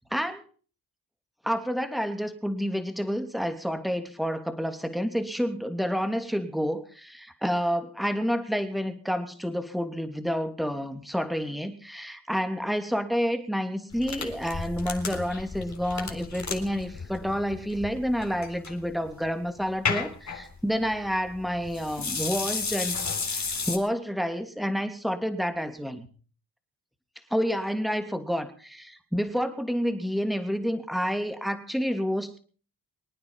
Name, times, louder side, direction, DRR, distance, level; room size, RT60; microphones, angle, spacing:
voice 1, 0.1-0.4 1.4-26.1 27.3-32.4, equal, ahead, 8 dB, 2.8 m, -29 dB
sound 1, 13.9-23.8, left 5 dB, 45° left, 3.8 m, -33 dB
25.0 x 9.5 x 5.7 m, 0.42 s
cardioid pair, 65°, 40 cm